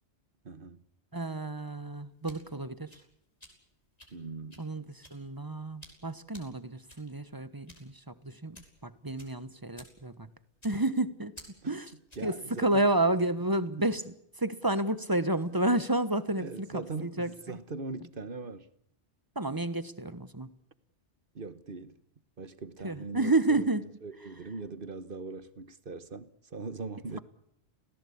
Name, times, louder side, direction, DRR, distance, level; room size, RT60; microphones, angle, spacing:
voice 1, 0.4-0.8 4.1-4.6 11.6-11.7 12.2-12.8 16.4-18.7 21.3-22.0 22.4-23.7 24.0-27.2, right 4 dB, 50° right, 1.5 m, -40 dB
voice 2, 1.1-3.0 4.6-10.3 10.6-11.3 11.6-11.9 12.2-17.3 19.3-20.5 22.8-23.9 27.1-27.2, right 2 dB, 20° right, 1.2 m, -30 dB
sound 1, 1.9-12.4, equal, 35° left, 5.6 m, -56 dB
27.5 x 18.0 x 8.5 m
omnidirectional pair, 1.2 m